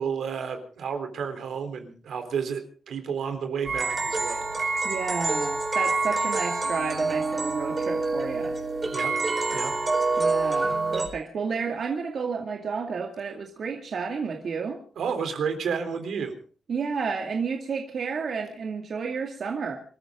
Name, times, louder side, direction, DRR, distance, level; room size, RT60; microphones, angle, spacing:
voice 1, 0.0-2.6 2.9-4.5 8.9-9.1 9.5-9.7 10.4-10.7 15.0-16.3, right 6 dB, 80° right, 7 dB, 3.6 m, -31 dB
sound 1, 3.7-11.1, right 3 dB, 30° right, 4.4 m, -26 dB
voice 2, 4.8-8.5 10.2-14.8 16.7-19.8, right 5 dB, 55° right, 2 dB, 2.3 m, -31 dB
26.5 x 14.0 x 3.8 m, 0.40 s
wide cardioid pair, 125°, 0 cm